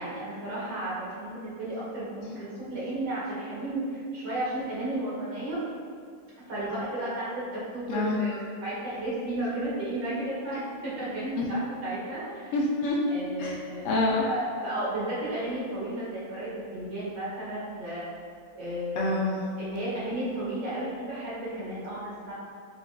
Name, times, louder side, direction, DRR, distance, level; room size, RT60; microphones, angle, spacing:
voice 1, 0.0-5.6 6.5-12.5 13.1-13.9 14.2-18.0 18.6-19.1 19.6-22.3, right 1 dB, 85° right, -9 dB, 1.8 m, -33 dB
voice 2, 7.9-8.2 11.3-11.5 12.5-13.0 13.4-13.6 13.8-14.2 19.0-19.4, left 2 dB, 80° left, -2 dB, 0.6 m, -26 dB
5.0 x 2.4 x 2.2 m, 2.1 s
omnidirectional pair, 1.7 m